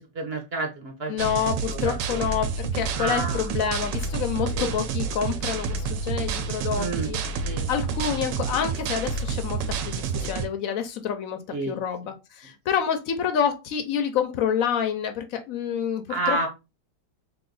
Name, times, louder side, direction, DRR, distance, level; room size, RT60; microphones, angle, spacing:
voice 1, 0.0-1.1 1.7-2.2 3.0-3.6 4.5-4.7 6.7-7.1 7.4-7.7 11.5-11.8 16.1-16.5, right 3 dB, 45° right, 0.8 m, -30 dB
voice 2, 1.1-7.2 7.7-16.5, left 8 dB, 70° left, 0.8 m, -28 dB
sound 1, 1.2-10.5, right 5 dB, 85° right, 1.3 m, -29 dB
3.3 x 2.9 x 3.8 m
omnidirectional pair, 1.9 m